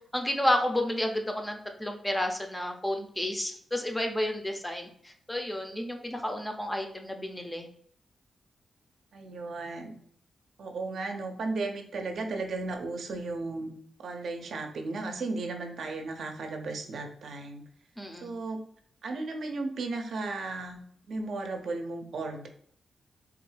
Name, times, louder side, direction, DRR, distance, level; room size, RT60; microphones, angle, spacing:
voice 1, 0.1-7.7 18.0-18.3, left 1 dB, 10° left, 4 dB, 0.4 m, -31 dB
voice 2, 9.1-9.9 10.6-13.7 14.0-17.6 18.2-18.6 19.0-20.8 21.1-22.5, right 3 dB, 75° right, 4 dB, 0.5 m, -35 dB
3.4 x 2.2 x 3.2 m, 0.62 s
cardioid pair, 95°, 0 cm